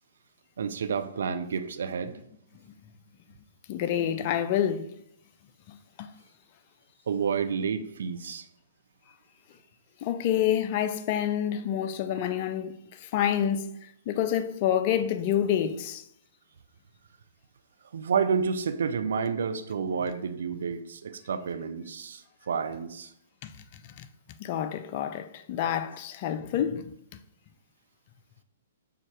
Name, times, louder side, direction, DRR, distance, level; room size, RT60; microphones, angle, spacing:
voice 1, 0.6-2.2 7.1-8.5 17.9-23.1, right 6 dB, 60° right, 0.4 m, -30 dB
voice 2, 3.7-4.9 5.7-6.1 10.0-13.7 14.1-16.0 24.0-24.1 24.4-26.9, left 10 dB, 40° left, 0.3 m, -28 dB
6.5 x 2.3 x 3.2 m
figure-of-eight pair, 115°, 0 cm